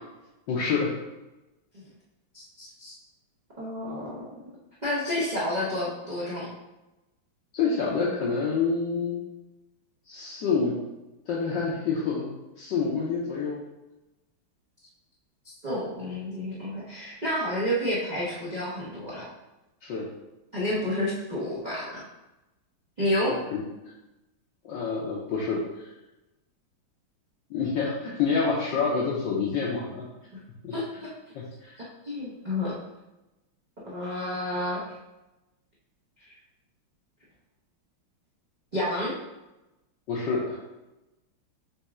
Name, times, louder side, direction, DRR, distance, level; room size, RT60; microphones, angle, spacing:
voice 1, 0.5-0.9 7.5-9.2 10.0-10.7 11.3-12.3 12.6-13.6 19.8-20.1 23.3-23.6 24.6-25.9 27.5-30.1 30.6-30.7 31.3-31.8 40.1-40.6, left 5 dB, 70° left, -5 dB, 1.3 m, -27 dB
voice 2, 2.3-2.9 3.6-4.3 4.8-6.5 15.6-19.2 20.5-22.0 23.0-23.3 30.7-31.1 32.0-32.8 33.8-34.8 36.2-36.3 38.7-39.1, left 1 dB, 50° right, -8 dB, 0.5 m, -30 dB
4.2 x 3.4 x 3.5 m, 1.0 s
omnidirectional pair, 2.2 m